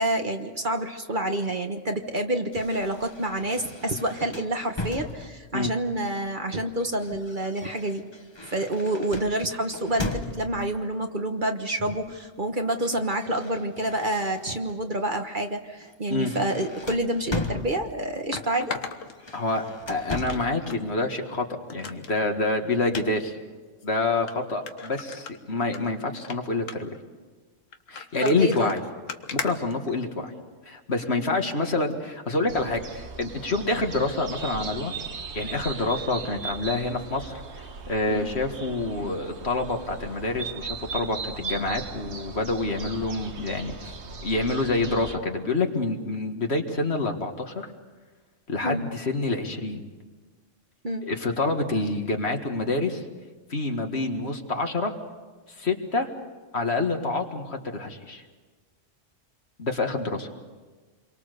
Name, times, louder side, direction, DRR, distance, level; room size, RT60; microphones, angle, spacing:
voice 1, 0.0-8.0 8.5-18.8 28.2-28.7 38.1-38.3 48.6-48.8 50.8-51.1, right 1 dB, 40° right, 5 dB, 1.4 m, -28 dB
sound 1, 2.5-5.6 6.6-10.8 11.8-12.2 12.5-14.8 15.2-15.4 15.8-18.2 19.1-20.6, left 2 dB, 20° left, 1.2 m, -38 dB
sound 2, 17.3-17.4 18.3-19.8 20.3-20.8 21.2-21.3 21.7-22.1 22.9-23.1 23.8-23.9 24.3-24.4 24.7-25.8 26.1-26.4 26.7-27.0 27.7-30.4 31.2-31.4 31.9-32.0, left 5 dB, 80° left, 1.6 m, -37 dB
voice 2, 19.3-23.4 23.8-26.9 27.9-28.8 29.3-30.3 30.7-34.9 35.3-43.9 44.2-47.7 48.5-49.8 51.0-53.0 53.5-54.9 55.6-56.1 56.5-58.2 59.6-60.3, left 2 dB, 55° left, 4 dB, 2.1 m, -27 dB
sound 3, 32.5-45.2, right 5 dB, 60° right, 1.5 m, -38 dB
28.5 x 23.5 x 6.8 m, 1.3 s
omnidirectional pair, 1.3 m